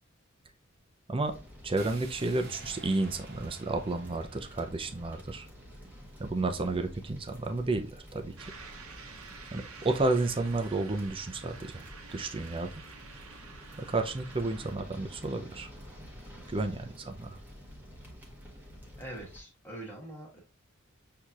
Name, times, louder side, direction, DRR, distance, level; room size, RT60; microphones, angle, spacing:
sound 1, 1.2-19.4, equal, 10° right, 0.9 m, -49 dB
voice 1, 1.6-5.5 6.2-8.3 9.5-11.9 12.1-12.8 13.8-15.7 16.5-17.4, right 2 dB, 25° right, 7 dB, 0.5 m, -31 dB
sound 2, 1.8-5.8, right 3 dB, 50° right, 0.9 m, -50 dB
sound 3, 8.4-14.8, right 5 dB, 80° right, 0.8 m, -49 dB
voice 2, 19.0-20.4, right 1 dB, 10° left, -2 dB, 1.3 m, -43 dB
6.2 x 2.8 x 2.4 m, 0.32 s
head